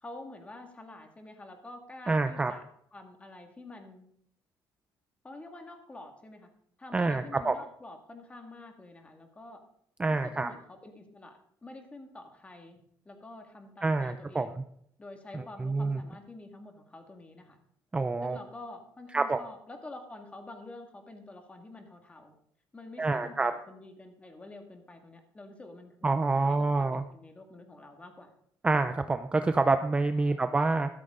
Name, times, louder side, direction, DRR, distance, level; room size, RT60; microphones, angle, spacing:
voice 1, 0.0-2.6 2.9-4.0 5.2-6.5 6.8-9.6 10.1-14.6 15.0-17.6 18.2-22.3 22.7-28.3 30.1-30.5, left 2 dB, 15° left, 4 dB, 2.1 m, -48 dB
voice 2, 2.1-2.5 6.9-7.6 10.0-10.5 13.8-14.5 15.3-16.0 17.9-18.4 19.1-19.4 23.0-23.5 26.0-27.0 28.6-30.9, right 3 dB, 15° right, 9 dB, 0.5 m, -27 dB
13.5 x 13.5 x 3.8 m, 0.69 s
cardioid pair, 150°, 8 cm